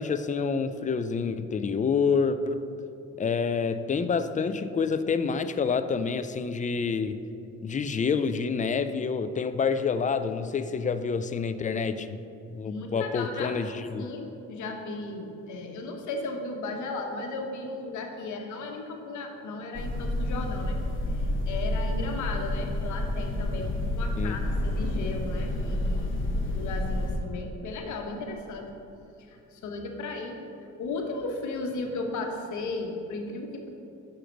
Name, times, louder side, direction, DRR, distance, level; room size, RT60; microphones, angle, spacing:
voice 1, 0.0-2.6 3.2-7.2 7.6-12.2 12.5-14.0 24.2-24.3, left 5 dB, 25° left, 11 dB, 0.4 m, -28 dB
voice 2, 12.6-20.8 21.1-26.2 26.5-28.7 29.3-30.4 30.8-33.7, left 2 dB, 75° left, 3 dB, 1.1 m, -35 dB
sound 1, 19.7-27.2, left 1 dB, 40° left, 1.2 m, -29 dB
6.5 x 5.7 x 5.1 m, 2.8 s
cardioid pair, 90°, 30 cm